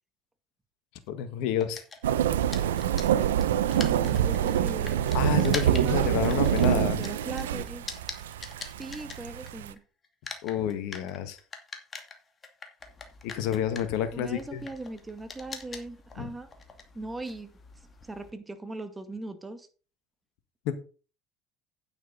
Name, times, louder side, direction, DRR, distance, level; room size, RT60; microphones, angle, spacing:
voice 1, 1.1-1.8 5.1-7.0 10.4-11.4 13.2-14.6 16.2-16.3 20.6-20.7, left 9 dB, 65° left, 1.6 m, -29 dB
sound 1, 1.6-9.8 10.0-18.3, left 4 dB, 30° left, 2.4 m, -42 dB
sound 2, 2.0-9.7, right 10 dB, 80° right, 0.7 m, -26 dB
voice 2, 3.7-5.0 5.7-7.9 8.8-9.8 14.1-16.5 16.9-17.5 18.0-19.7, right 2 dB, 15° right, 2.0 m, -39 dB
9.3 x 8.7 x 4.0 m
hypercardioid pair, 70°, 0 cm